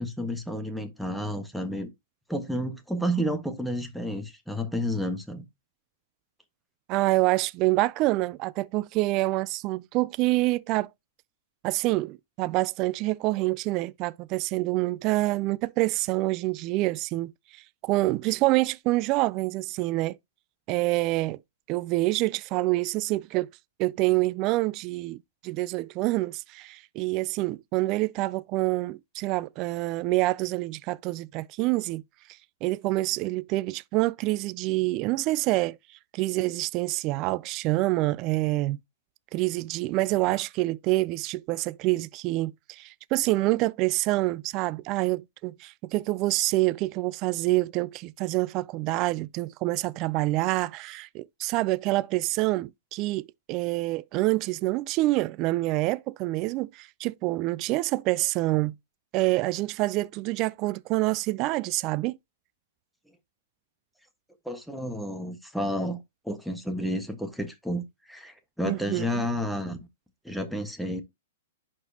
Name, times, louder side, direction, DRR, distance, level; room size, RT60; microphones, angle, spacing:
voice 1, 0.0-1.9 2.3-5.4 64.4-69.8 70.2-71.0, equal, ahead, 1.4 m, -31 dB
voice 2, 6.9-10.9 11.6-20.2 20.7-21.4 21.7-23.5 23.8-25.2 25.4-32.0 32.6-35.8 36.1-38.8 39.3-58.7 59.1-62.2 68.6-69.3, right 19 dB, 40° right, 0.3 m, -27 dB
10.5 x 4.4 x 2.8 m
hypercardioid pair, 125°, 0 cm